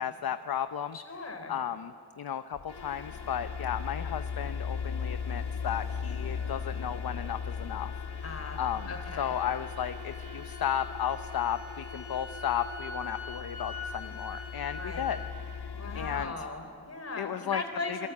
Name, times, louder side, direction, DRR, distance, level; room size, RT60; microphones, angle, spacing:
voice 1, 0.0-1.0 1.5-7.9 8.6-8.9 9.2-15.2 15.9-16.3 17.2-17.6 17.9-18.1, left 9 dB, 65° left, 9 dB, 0.8 m, -34 dB
voice 2, 0.9-1.5 8.2-8.6 8.9-9.4 14.7-15.1 15.7-18.1, left 3 dB, 40° left, 4 dB, 4.2 m, -38 dB
sound 1, 2.5-16.2, left 6 dB, 85° left, 2.1 m, -38 dB
sound 2, 6.1-15.2, left 3 dB, 40° right, 7.8 m, -46 dB
28.0 x 22.5 x 8.5 m, 2.2 s
wide cardioid pair, 150°, 39 cm